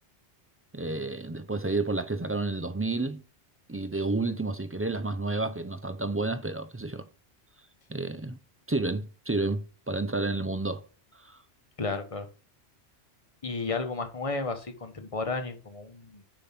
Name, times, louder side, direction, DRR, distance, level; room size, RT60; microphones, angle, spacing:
voice 1, 0.7-3.2 3.7-7.1 7.9-8.4 8.7-10.8 11.1-11.4, right 2 dB, 20° right, 0.3 m, -30 dB
voice 2, 11.8-12.3 13.4-16.2, left 3 dB, 30° left, 1.1 m, -33 dB
6.9 x 5.7 x 5.9 m
omnidirectional pair, 1.2 m